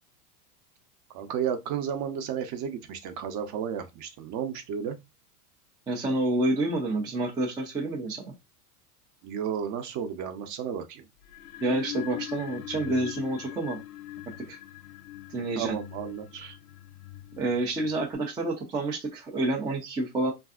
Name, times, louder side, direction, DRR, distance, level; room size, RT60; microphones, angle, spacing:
voice 1, 1.1-5.0 9.2-11.0 15.6-16.6, right 8 dB, 40° right, 0.7 m, -33 dB
voice 2, 5.9-8.2 11.6-13.8 14.5-14.6 15.3-15.8 17.4-20.3, right 2 dB, 10° right, 0.3 m, -28 dB
sound 1, 11.2-18.1, left 15 dB, 70° left, 0.7 m, -42 dB
3.2 x 2.6 x 2.3 m
supercardioid pair, 120°, 46 cm